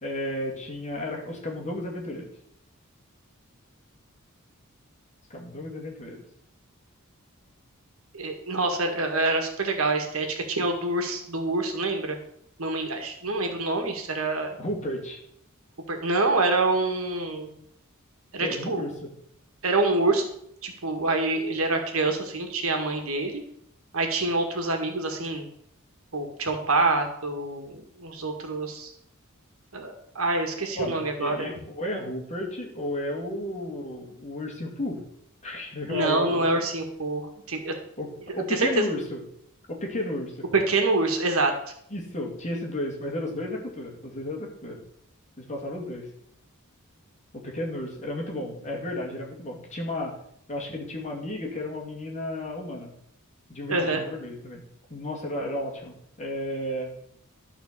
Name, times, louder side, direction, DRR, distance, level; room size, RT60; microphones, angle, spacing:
voice 1, 0.0-2.3 5.3-6.2 14.6-15.2 18.4-18.9 30.7-35.0 35.4-36.6 38.0-39.2 39.7-40.4 41.9-44.8 45.4-46.1 47.3-50.2 50.5-52.9 53.5-54.6 54.9-56.9, left 1 dB, 35° left, 0 dB, 2.3 m, -33 dB
voice 2, 8.1-12.2 12.6-14.6 15.9-17.6 18.3-18.9 19.6-20.2 20.6-23.4 23.9-25.5 26.1-28.9 29.7-31.5 35.9-37.7 38.5-38.9 40.5-41.5 53.7-54.0, right 2 dB, 75° right, 4 dB, 1.8 m, -26 dB
12.0 x 4.4 x 6.7 m, 0.70 s
head